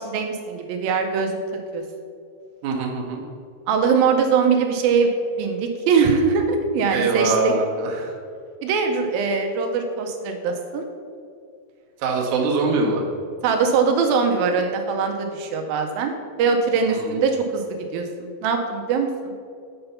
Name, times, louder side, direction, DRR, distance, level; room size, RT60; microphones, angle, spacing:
voice 1, 0.0-1.4 1.7-1.8 3.7-5.1 5.4-7.5 8.6-10.9 13.4-16.1 16.4-19.3, right 5 dB, 80° right, 4 dB, 2.3 m, -22 dB
voice 2, 2.6-3.2 6.9-8.1 12.0-13.0 16.9-17.2, right 4 dB, 65° right, -1 dB, 2.2 m, -23 dB
7.8 x 5.5 x 5.6 m, 2.3 s
omnidirectional pair, 4.3 m